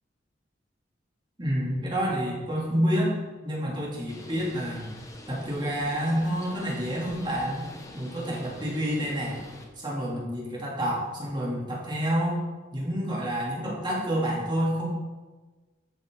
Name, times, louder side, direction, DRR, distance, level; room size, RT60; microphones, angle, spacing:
voice 1, 1.4-3.1 3.4-4.9 5.3-7.7 7.9-9.4 9.8-12.4 12.7-14.9, equal, 25° right, -4 dB, 2.9 m, -28 dB
Bird, 4.1-9.6, left 1 dB, 15° left, 1.2 m, -45 dB
13.5 x 8.0 x 3.9 m, 1.3 s
head